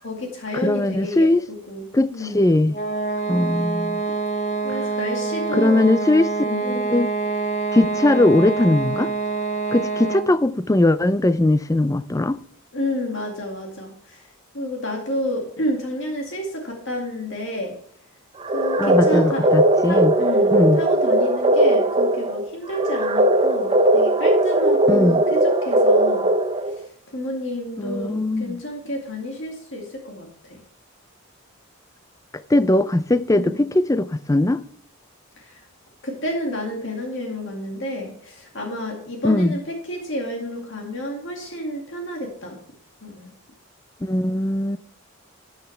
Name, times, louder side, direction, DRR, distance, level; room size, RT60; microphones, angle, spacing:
voice 1, 0.0-2.5 4.6-5.9 6.4-6.8 12.7-14.3 14.5-17.7 18.5-19.6 19.8-26.3 26.7-30.6 33.3-33.7 35.4-35.7 36.0-42.6 43.0-43.3, left 1 dB, 55° left, 2.2 m, -30 dB
voice 2, 0.6-1.4 1.9-2.7 3.3-4.0 5.5-6.3 6.6-7.1 7.7-9.1 9.7-12.4 18.8-20.1 20.5-20.8 24.9-25.2 27.8-28.6 32.5-34.6 39.2-39.6 44.0-44.8, left 1 dB, 15° left, 0.4 m, -19 dB
sound 1, 2.7-10.4, right 4 dB, 35° left, 0.8 m, -26 dB
sound 2, 18.4-26.8, right 1 dB, 25° right, 0.7 m, -18 dB
13.0 x 8.0 x 3.3 m
head